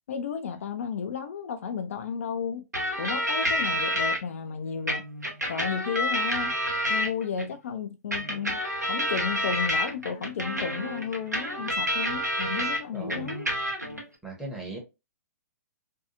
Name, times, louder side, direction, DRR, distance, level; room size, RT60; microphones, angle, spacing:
voice 1, 0.1-2.6 3.0-5.0 5.5-6.5 6.9-8.6 8.9-13.5, left 7 dB, 55° left, 0.3 m, -33 dB
sound 1, 2.7-4.2 4.9-7.5 8.1-12.8 13.1-14.0, equal, 90° right, 0.8 m, -29 dB
voice 2, 12.9-13.3 14.2-14.8, right 2 dB, 5° right, 0.8 m, -38 dB
2.6 x 2.3 x 2.5 m
figure-of-eight pair, 115°, 9 cm